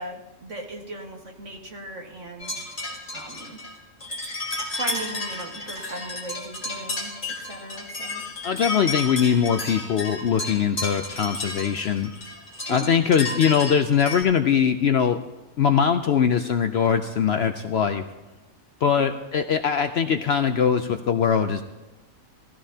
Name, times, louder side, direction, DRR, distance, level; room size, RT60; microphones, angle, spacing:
voice 1, 0.0-2.5 3.1-3.6 4.8-8.2 12.7-12.9 18.9-19.1, right 1 dB, 60° right, 1 dB, 2.0 m, -37 dB
sound 1, 2.4-14.2, left 2 dB, 35° left, 2.9 m, -32 dB
voice 2, 8.4-12.1 12.7-15.2 15.6-18.0 18.8-21.6, left 7 dB, 60° left, 8 dB, 0.7 m, -21 dB
17.5 x 15.0 x 2.8 m, 1.1 s
omnidirectional pair, 1.5 m